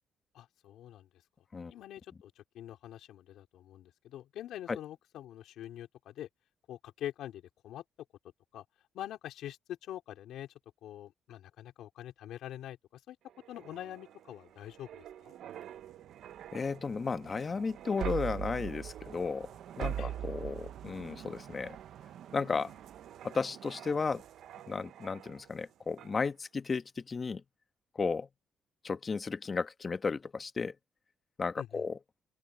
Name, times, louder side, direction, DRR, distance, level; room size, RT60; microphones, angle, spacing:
voice 1, 0.3-1.1 1.7-6.3 6.7-7.8 8.5-8.6 8.9-10.5 10.8-13.2 13.5-15.4 20.0-20.2 31.6-31.8, left 12 dB, 80° left, 4.5 m, -45 dB
sound 1, 13.3-25.6 26.0-26.2, right 10 dB, 75° right, 1.2 m, -43 dB
voice 2, 16.5-19.5 19.8-21.8 22.3-22.7 23.2-24.2 24.7-27.4 27.9-28.3 28.8-30.7 31.4-32.0, left 4 dB, 35° left, 1.4 m, -34 dB
open air
cardioid pair, 90°, 0 cm